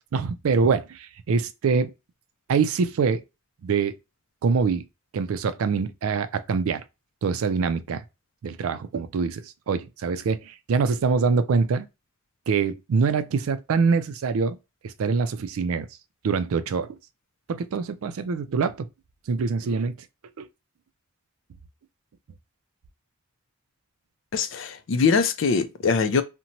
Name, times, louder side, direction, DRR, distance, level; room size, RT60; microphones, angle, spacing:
voice 1, 0.1-1.9 2.5-3.2 3.6-3.9 4.4-4.8 5.1-6.8 7.2-8.0 8.4-11.9 12.5-14.6 14.8-15.9 16.2-17.0 17.5-18.9 19.3-19.9 20.4-20.5, right 5 dB, 85° right, 0.4 m, -24 dB
voice 2, 24.3-26.2, left 5 dB, 65° left, 0.4 m, -22 dB
2.6 x 2.1 x 2.8 m
head